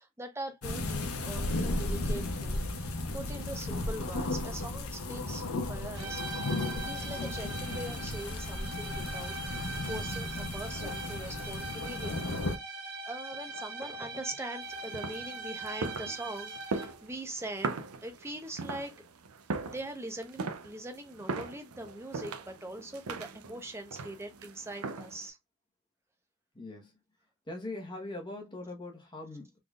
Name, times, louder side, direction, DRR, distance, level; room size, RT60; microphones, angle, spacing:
voice 1, 0.0-6.2 6.8-12.3 13.0-18.9 19.6-25.4, right 1 dB, 10° right, 0.8 m, -42 dB
sound 1, 0.6-12.6, left 2 dB, 80° left, 0.8 m, -35 dB
sound 2, 6.0-17.1, right 3 dB, 55° right, 1.0 m, -41 dB
sound 3, 14.6-25.3, right 4 dB, 85° right, 0.5 m, -40 dB
voice 2, 26.5-27.0 27.5-29.6, left 2 dB, 20° left, 1.1 m, -41 dB
3.9 x 3.4 x 2.4 m
head